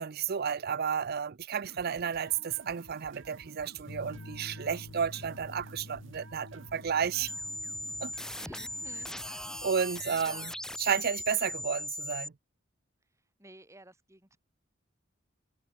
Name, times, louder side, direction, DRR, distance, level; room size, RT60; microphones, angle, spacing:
voice 1, 0.0-7.3 8.0-8.1 9.6-10.5 10.8-12.3, right 7 dB, 50° right, 0.5 m, -32 dB
sound 1, 1.6-9.6, right 2 dB, 70° right, 2.1 m, -53 dB
sound 2, 3.9-11.1, left 1 dB, 70° left, 2.7 m, -50 dB
sound 3, 7.3-12.3, left 1 dB, 5° left, 1.0 m, -39 dB
voice 2, 8.3-9.3 9.8-10.6 13.4-14.4, right 2 dB, 15° right, 3.9 m, -54 dB
head